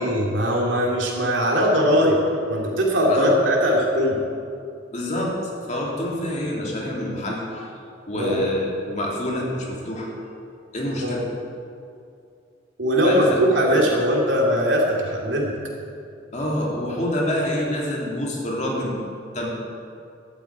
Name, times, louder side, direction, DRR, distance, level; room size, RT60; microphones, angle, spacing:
voice 1, 0.0-2.2 2.5-4.2 8.1-8.4 11.0-11.2 12.8-15.5, equal, 80° right, -1 dB, 2.9 m, -20 dB
voice 2, 3.1-3.5 4.9-5.3 5.7-7.7 8.1-10.1 10.7-11.2 13.0-13.8 16.3-18.9 19.3-19.5, left 1 dB, 40° left, -3 dB, 2.9 m, -27 dB
12.5 x 8.2 x 9.0 m, 2.5 s
head